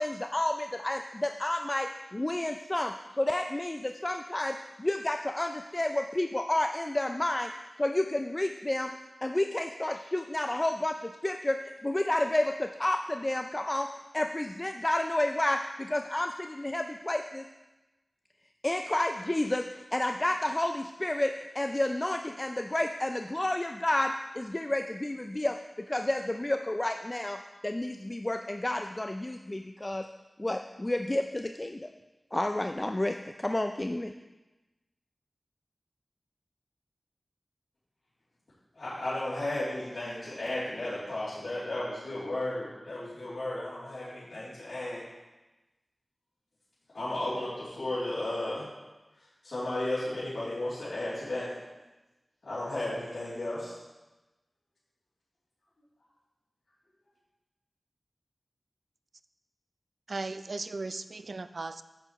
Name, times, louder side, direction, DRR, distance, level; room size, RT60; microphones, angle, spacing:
voice 1, 0.0-9.0 9.2-17.4 18.6-30.1 30.4-31.9 32.3-34.1, left 1 dB, 25° left, 6 dB, 0.3 m, -30 dB
voice 2, 38.7-45.0 46.9-48.7 49.4-51.5 52.4-53.7, left 1 dB, 75° left, -13 dB, 3.0 m, -34 dB
voice 3, 60.1-61.8, right 3 dB, 70° right, 12 dB, 0.3 m, -37 dB
10.0 x 7.6 x 3.0 m, 1.1 s
wide cardioid pair, 65°, 0 cm